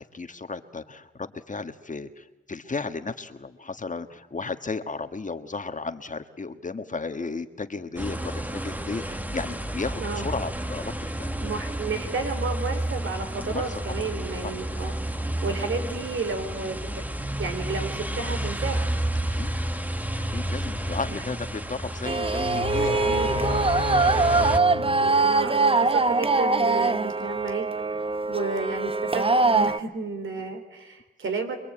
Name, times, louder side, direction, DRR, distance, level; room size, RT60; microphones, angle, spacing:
voice 1, 0.1-11.3 13.3-14.1 19.3-19.5 20.3-23.3, left 4 dB, 40° left, 8 dB, 1.6 m, -34 dB
sound 1, 8.0-24.6, right 1 dB, 10° right, 1.5 m, -31 dB
voice 2, 11.4-17.0 17.4-18.9 20.7-21.2 22.8-23.8 24.8-27.6 28.3-31.6, right 4 dB, 70° right, 6 dB, 3.9 m, -32 dB
sound 2, 22.0-29.8, right 3 dB, 25° right, 0.9 m, -23 dB
sound 3, 22.4-25.7, left 7 dB, 75° left, 1.1 m, -34 dB
26.0 x 21.5 x 8.9 m, 1.1 s
cardioid pair, 60°, 21 cm